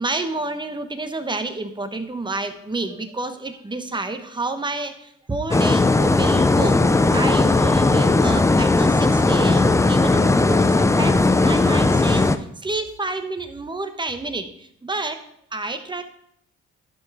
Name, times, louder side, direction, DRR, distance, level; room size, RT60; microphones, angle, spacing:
voice 1, 0.0-15.2 15.5-16.0, right 2 dB, 15° right, 8 dB, 1.0 m, -29 dB
sound 1, 5.5-12.4, left 2 dB, 10° left, 0.4 m, -17 dB
11.0 x 5.7 x 4.8 m, 0.72 s
cardioid pair, 90°, 30 cm